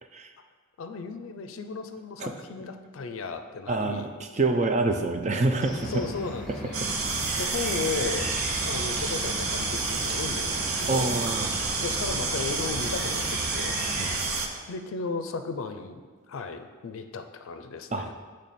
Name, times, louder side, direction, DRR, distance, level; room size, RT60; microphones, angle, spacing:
voice 1, 0.8-4.1 5.9-7.0 7.4-8.3 8.6-11.1 11.8-13.8 14.4-16.0 16.3-18.2, left 4 dB, 70° left, 8 dB, 0.4 m, -35 dB
voice 2, 3.7-4.1 4.3-5.9 7.3-7.4 10.9-11.5 13.9-14.5 17.9-18.1, right 3 dB, 35° right, 6 dB, 0.4 m, -27 dB
sound 1, 5.6-14.2, left 1 dB, 5° left, 1.2 m, -38 dB
sound 2, 6.7-14.5, right 4 dB, 85° right, 0.7 m, -29 dB
8.3 x 3.2 x 4.1 m, 1.5 s
head